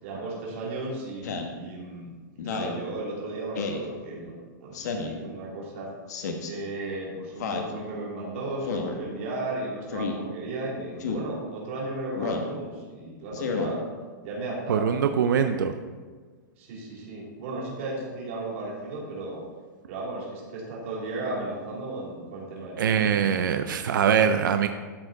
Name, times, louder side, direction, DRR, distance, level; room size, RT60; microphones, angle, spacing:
voice 1, 0.0-2.1 2.4-5.9 6.5-13.8 14.2-15.0 15.3-15.7 16.6-19.4 19.9-23.2, right 2 dB, 40° right, -4 dB, 2.7 m, -35 dB
Speech synthesizer, 1.2-1.5 2.4-2.8 3.5-3.8 4.7-5.2 6.1-6.5 7.4-7.7 8.6-9.0 9.9-10.2 11.0-11.3 12.2-12.5 13.3-13.7, left 4 dB, 60° left, 1.0 m, -31 dB
voice 2, 14.7-15.7 22.8-24.7, right 7 dB, 80° right, 8 dB, 0.5 m, -23 dB
13.0 x 4.4 x 3.8 m, 1.5 s
supercardioid pair, 175°, 11 cm